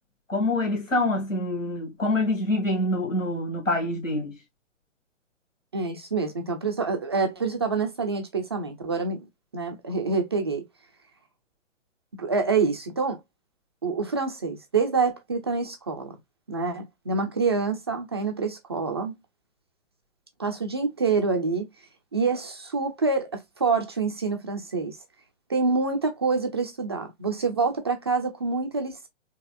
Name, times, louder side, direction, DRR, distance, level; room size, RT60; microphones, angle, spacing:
voice 1, 0.3-4.4, left 2 dB, 85° left, 2.0 m, -26 dB
voice 2, 5.7-9.2 9.5-10.6 12.2-13.2 13.8-16.2 16.5-19.2 20.4-21.7 22.1-25.0 25.5-29.1, right 4 dB, 20° right, 0.4 m, -26 dB
4.3 x 2.9 x 2.3 m
figure-of-eight pair, 125°, 38 cm